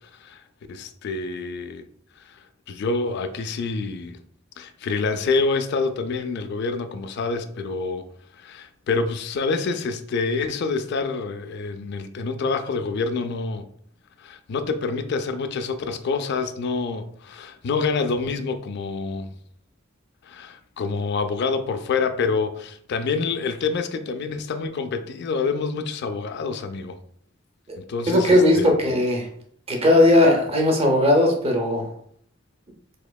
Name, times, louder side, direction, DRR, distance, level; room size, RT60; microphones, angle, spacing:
voice 1, 0.7-1.8 2.7-4.2 4.6-8.1 8.4-13.7 14.2-19.3 20.3-27.0 27.8-28.7, left 4 dB, 55° left, 0.3 m, -27 dB
voice 2, 28.1-29.3 29.7-31.9, left 1 dB, 30° right, 0.6 m, -18 dB
4.1 x 2.8 x 2.2 m
head